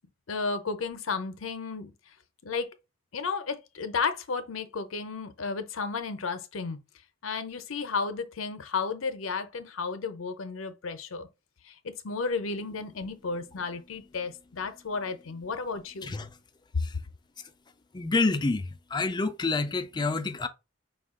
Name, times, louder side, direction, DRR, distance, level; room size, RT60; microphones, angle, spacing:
voice 1, 0.3-1.9 2.4-2.7 3.1-6.8 7.2-11.3 11.7-16.1, left 4 dB, 80° left, 0.6 m, -33 dB
voice 2, 17.9-20.5, left 3 dB, 20° left, 0.4 m, -28 dB
5.1 x 2.4 x 3.6 m
head